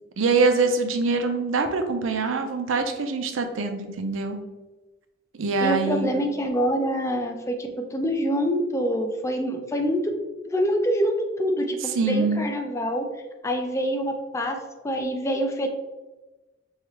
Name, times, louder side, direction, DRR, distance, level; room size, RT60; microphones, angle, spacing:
voice 1, 0.2-4.4 5.3-6.2 12.0-12.4, right 4 dB, 90° right, 6 dB, 0.5 m, -24 dB
voice 2, 5.6-10.0 10.4-13.1 13.4-15.7, equal, 15° left, 4 dB, 0.3 m, -26 dB
4.7 x 2.4 x 3.0 m, 1.1 s
head